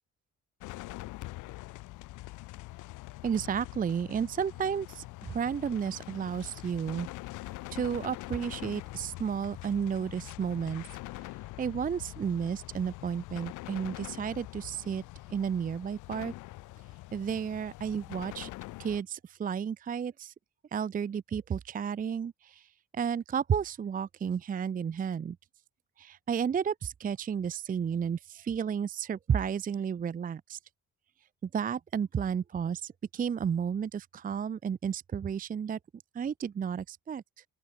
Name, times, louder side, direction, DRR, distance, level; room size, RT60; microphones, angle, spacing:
sound 1, 0.6-19.0, left 19 dB, 90° left, 0.6 m, -44 dB
voice 1, 3.2-7.1 7.7-10.9 11.1-11.3 11.6-15.0 15.3-16.3 17.1-18.5 18.8-20.3 20.7-25.4 26.0-30.6 31.4-35.8 36.1-37.4, right 7 dB, 30° right, 0.5 m, -32 dB
open air
cardioid pair, 90°, 30 cm